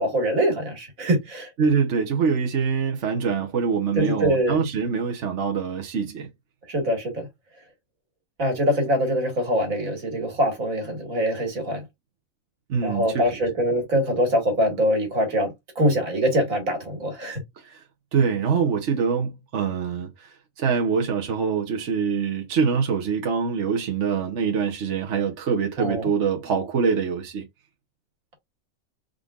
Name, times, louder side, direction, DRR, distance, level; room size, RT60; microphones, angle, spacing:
voice 1, 0.0-1.5 4.0-4.6 6.7-7.3 8.4-11.8 12.8-17.4 25.8-26.1, equal, 75° right, 2.4 m, -23 dB
voice 2, 1.6-6.3 12.7-13.2 17.6-17.8 18.1-27.5, right 6 dB, 60° right, 1.2 m, -24 dB
4.9 x 3.9 x 2.4 m
omnidirectional pair, 1.4 m